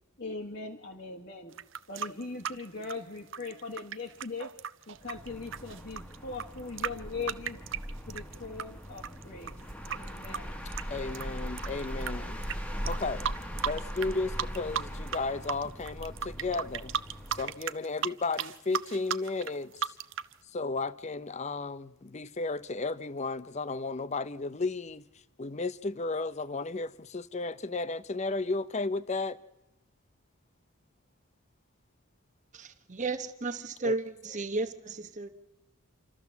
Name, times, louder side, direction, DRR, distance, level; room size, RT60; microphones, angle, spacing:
voice 1, 0.2-1.5 1.9-4.5 4.9-7.6 8.1-9.5 9.9-10.5, left 4 dB, 50° left, 1.5 m, -40 dB
sound 1, 1.5-8.6 9.0-12.1 12.4-12.6 12.9-14.1 14.4-15.2 15.4-20.3, right 8 dB, 60° right, 0.6 m, -35 dB
sound 2, 5.0-17.6, equal, 5° left, 1.3 m, -40 dB
voice 2, 10.9-12.4 12.9-13.3 13.6-17.0 17.4-20.0 20.5-25.0 25.4-29.4 33.8-33.9, left 3 dB, 30° left, 0.6 m, -34 dB
voice 3, 32.5-35.3, right 3 dB, 35° right, 1.0 m, -34 dB
27.0 x 14.0 x 7.1 m
head